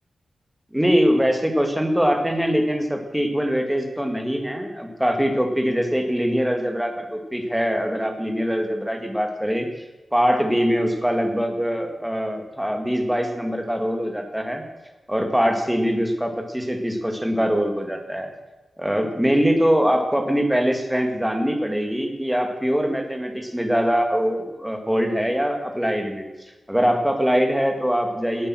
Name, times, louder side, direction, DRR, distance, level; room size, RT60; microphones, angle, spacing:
voice 1, 0.7-9.7 10.1-14.7 15.1-18.3 18.8-26.3 26.7-28.5, equal, 5° right, 4 dB, 2.0 m, -22 dB
18.0 x 8.8 x 6.2 m, 1.1 s
wide cardioid pair, 150°, 0 cm